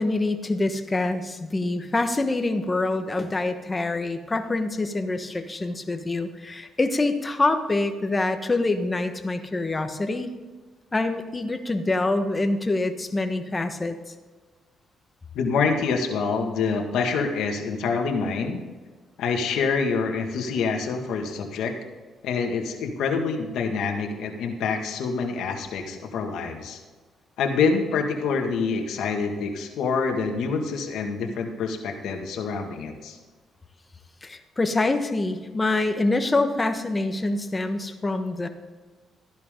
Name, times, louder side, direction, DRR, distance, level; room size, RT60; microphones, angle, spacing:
voice 1, 0.0-10.3 10.9-13.9 34.2-38.5, left 2 dB, 20° left, 7 dB, 1.3 m, -25 dB
voice 2, 15.3-18.6 19.2-21.7 22.2-26.8 27.4-33.2, left 5 dB, 80° left, 3 dB, 1.9 m, -26 dB
14.0 x 11.0 x 3.8 m, 1.4 s
cardioid pair, 90°, 0 cm